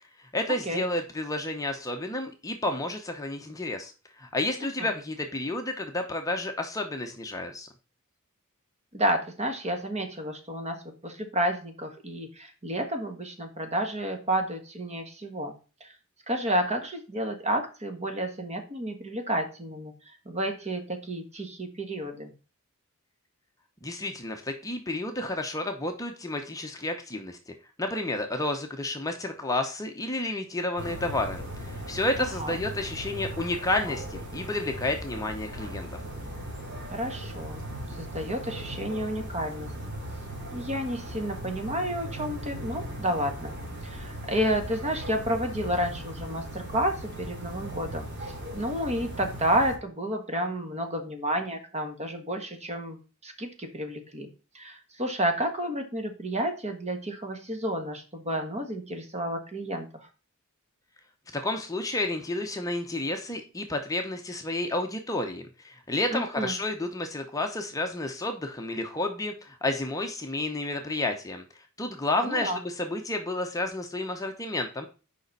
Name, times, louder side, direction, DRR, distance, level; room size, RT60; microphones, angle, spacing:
voice 1, 0.3-3.9 4.2-7.7 23.8-27.5 27.8-35.9 61.3-74.9, left 2 dB, 15° left, 4 dB, 0.8 m, -31 dB
voice 2, 8.9-15.5 15.8-15.9 16.3-19.9 20.2-22.3 32.2-32.6 36.9-37.6 37.9-39.7 40.5-43.5 43.8-54.3 54.5-60.1 66.1-66.5 72.2-72.6, right 1 dB, 30° right, 4 dB, 1.5 m, -31 dB
sound 1, 30.8-49.8, right 1 dB, 50° right, 3.1 m, -38 dB
6.7 x 5.2 x 5.3 m, 0.34 s
head